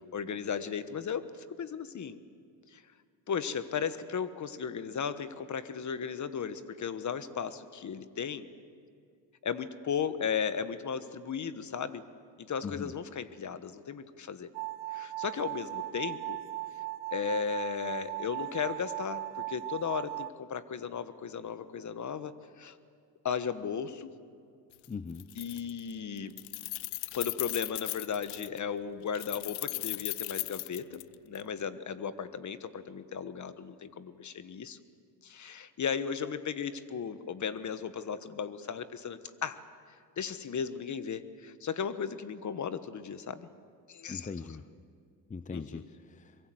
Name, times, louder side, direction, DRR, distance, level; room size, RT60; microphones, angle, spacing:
voice 1, 0.0-2.2 2.7-2.8 3.3-8.5 9.4-12.0 12.4-14.5 14.9-16.4 17.1-22.8 23.2-24.1 25.3-26.4 27.1-34.8 35.2-39.6 40.2-43.5 43.9-44.3 45.5-45.8, left 7 dB, 40° left, 13 dB, 1.3 m, -36 dB
sound 1, 14.5-20.3, right 16 dB, 75° right, 0.6 m, -38 dB
Keys jangling, 24.7-24.9 25.2-25.9 26.2-28.6 29.1-31.4, left 24 dB, 80° left, 0.6 m, -37 dB
voice 2, 24.9-25.3 44.1-44.7 45.3-46.4, left 5 dB, 15° left, 12 dB, 0.7 m, -40 dB
24.0 x 22.5 x 7.9 m, 2.3 s
supercardioid pair, 85°, 46 cm